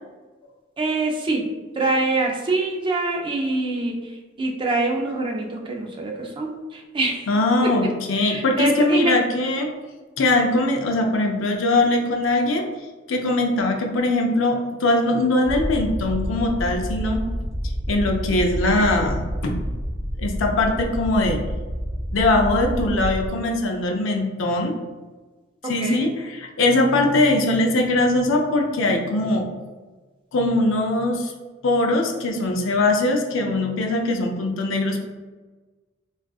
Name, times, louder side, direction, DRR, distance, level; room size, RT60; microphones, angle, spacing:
voice 1, 0.8-1.5 1.7-7.3 7.6-9.1 25.6-26.1, right 2 dB, 25° right, 1 dB, 0.4 m, -25 dB
voice 2, 7.3-9.7 10.2-12.7 13.1-17.2 17.9-19.6 20.2-21.4 22.1-24.7 25.7-29.4 30.3-31.3 31.6-35.1, left 2 dB, 75° left, 3 dB, 0.5 m, -21 dB
sound 1, 15.4-23.3, equal, 10° right, 1.2 m, -28 dB
3.5 x 2.4 x 2.3 m, 1.3 s
head